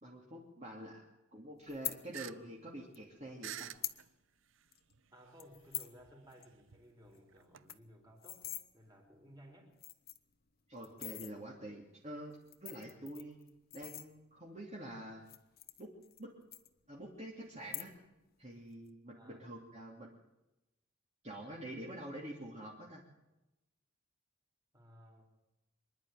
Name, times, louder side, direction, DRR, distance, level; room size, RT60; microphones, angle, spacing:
voice 1, 0.0-1.0 1.3-3.7 10.7-13.4 13.7-15.2 15.8-15.9 16.2-16.3 16.9-17.9 18.4-20.2 21.2-23.0, right 1 dB, 35° right, -3 dB, 2.9 m, -47 dB
sound 1, 1.7-2.0 2.9-3.0 3.6-4.0 4.4-4.5 4.7-4.9 5.4-6.0 6.3-6.5 6.7-6.8 7.1-7.2 7.5-8.6 9.3-9.4 9.7-10.3 10.8-11.3 12.3-14.5 15.2-16.2 16.5-17.1 17.6-18.2 18.5-18.9, left 15 dB, 50° left, 1.1 m, -44 dB
sound 2, 2.1-2.3 2.7-2.8 3.4-4.1 4.9-5.0 6.0-7.8, right 11 dB, 65° right, 0.6 m, -46 dB
voice 2, 5.1-9.8 19.1-19.4 24.7-25.2, equal, 20° right, 2 dB, 4.3 m, -58 dB
25.0 x 11.0 x 9.3 m, 0.98 s
head